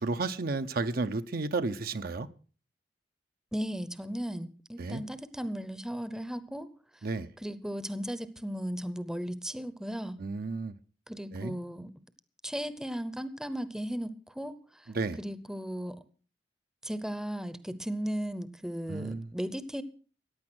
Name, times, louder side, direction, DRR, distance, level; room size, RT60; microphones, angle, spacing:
voice 1, 0.0-2.3 4.8-5.0 7.0-7.3 10.2-10.7 11.3-11.6 14.9-15.2 18.9-19.3, right 3 dB, 55° right, 0.7 m, -32 dB
voice 2, 3.5-6.7 7.4-10.2 11.1-11.9 12.4-14.9 15.2-16.0 16.8-19.8, equal, 5° right, 0.7 m, -36 dB
15.0 x 9.6 x 6.2 m
head